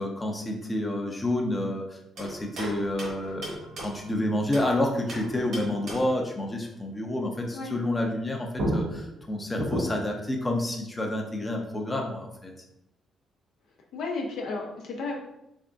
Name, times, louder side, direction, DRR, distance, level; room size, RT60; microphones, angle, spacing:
voice 1, 0.0-12.5, left 1 dB, 20° left, 1 dB, 0.6 m, -29 dB
sound 1, 2.2-4.7 5.1-6.3 8.2-8.3 8.6-10.2, right 1 dB, 65° right, 1.2 m, -34 dB
voice 2, 13.9-15.2, left 3 dB, 75° left, 0 dB, 0.7 m, -33 dB
3.5 x 3.4 x 2.5 m, 0.82 s
cardioid pair, 90°, 0 cm